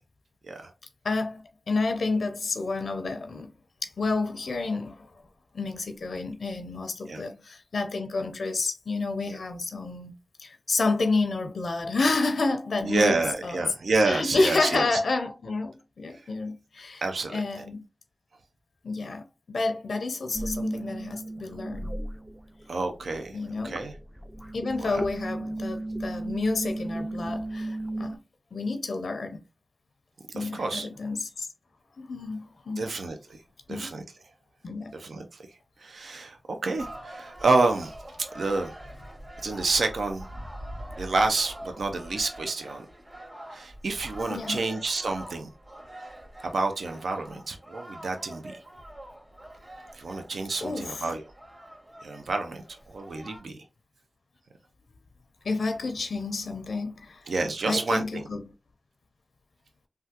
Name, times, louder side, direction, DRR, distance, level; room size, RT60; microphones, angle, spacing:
voice 1, 1.0-3.5 3.8-5.1 5.5-13.2 13.4-13.6 14.0-17.0 17.3-17.8 18.8-21.9 23.3-23.8 24.5-28.2 28.5-29.4 30.3-31.5 32.0-32.9 33.7-33.9 34.6-34.9 44.3-44.6 50.6-51.1 55.4-57.3 57.6-58.4, left 3 dB, 85° left, 0.5 m, -30 dB
voice 2, 12.8-15.0 17.0-17.3 22.7-23.4 23.6-23.9 24.8-25.0 30.4-30.9 32.8-33.4 33.7-34.0 34.9-35.3 35.8-38.0 38.3-38.7 39.4-40.3 41.0-42.9 43.5-45.5 46.4-48.6 49.9-51.2 52.0-53.6 57.3-58.2, right 3 dB, 85° right, 0.5 m, -28 dB
sound 1, 20.3-22.7 22.9-28.2, right 1 dB, 5° right, 0.4 m, -35 dB
sound 2, 36.8-53.4, right 1 dB, 40° right, 1.7 m, -44 dB
3.4 x 2.3 x 2.8 m
cardioid pair, 45°, 0 cm